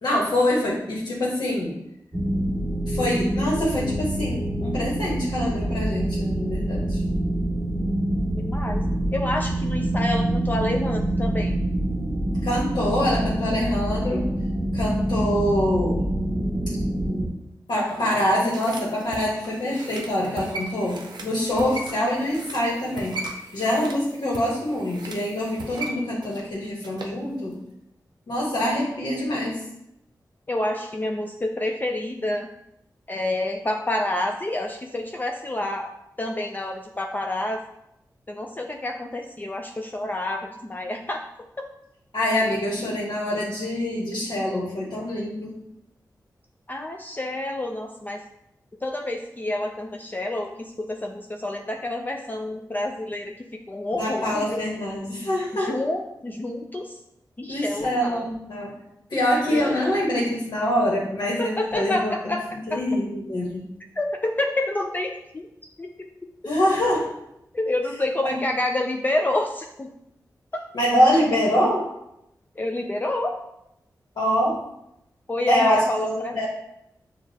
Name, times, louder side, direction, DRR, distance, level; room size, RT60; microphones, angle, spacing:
voice 1, 0.0-1.7 2.9-7.0 12.4-14.3 14.7-16.1 17.7-23.2 23.5-27.6 28.3-29.6 42.1-45.5 53.9-55.8 57.5-58.7 59.1-62.4 62.7-63.6 66.4-67.1 68.2-68.4 70.7-71.9 74.2-74.6 75.5-76.5, left 1 dB, 75° left, -5 dB, 1.1 m, -25 dB
sound 1, 2.1-17.3, right 1 dB, ahead, 1.6 m, -26 dB
voice 2, 8.4-8.8 9.1-11.5 30.5-32.5 33.1-35.9 36.2-37.6 38.3-41.2 41.6-41.7 46.7-48.2 48.8-53.4 53.7-54.6 55.5-57.0 57.4-58.3 59.5-59.8 61.4-62.8 63.9-65.5 65.8-66.3 67.5-69.9 72.6-73.3 75.3-76.4, left 1 dB, 25° left, 2 dB, 0.4 m, -28 dB
sound 2, 17.8-27.2 27.5-27.6, right 3 dB, 85° right, 0.6 m, -38 dB
6.6 x 2.4 x 2.7 m, 0.83 s
cardioid pair, 50°, 7 cm